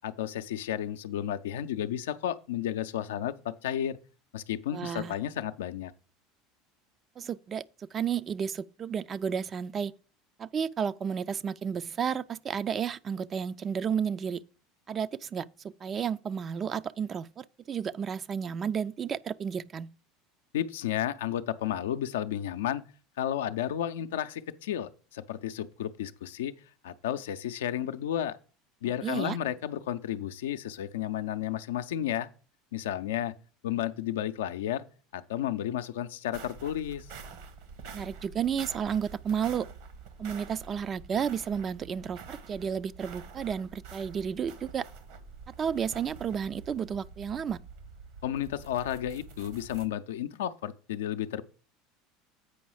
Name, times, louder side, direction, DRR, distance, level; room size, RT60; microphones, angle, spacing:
voice 1, 0.0-4.0 4.3-5.9 20.5-22.8 23.2-26.5 26.8-28.4 28.8-32.3 32.7-33.3 33.6-34.8 35.1-37.1 48.2-51.4, left 11 dB, 75° left, 0.5 m, -32 dB
voice 2, 4.7-5.1 7.2-9.9 10.4-14.4 14.9-19.9 29.0-29.4 37.9-39.7 40.2-44.9 45.6-47.6, right 7 dB, 35° right, 0.4 m, -32 dB
sound 1, 36.3-49.9, right 5 dB, 65° right, 1.2 m, -47 dB
8.3 x 5.3 x 4.8 m
figure-of-eight pair, 75°, 0 cm